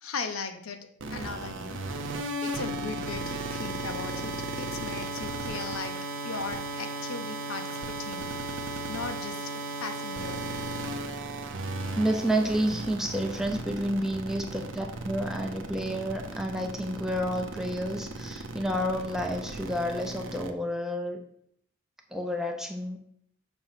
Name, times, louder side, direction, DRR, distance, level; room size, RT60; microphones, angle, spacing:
voice 1, 0.0-1.8 2.4-6.0 6.2-8.4 8.9-9.5 9.8-10.5, left 4 dB, 80° left, 7 dB, 0.7 m, -38 dB
sound 1, 1.0-20.5, right 2 dB, 60° right, 0.6 m, -35 dB
voice 2, 11.9-21.2 22.1-23.2, equal, ahead, 2 dB, 0.5 m, -30 dB
6.1 x 3.0 x 5.6 m, 0.69 s
head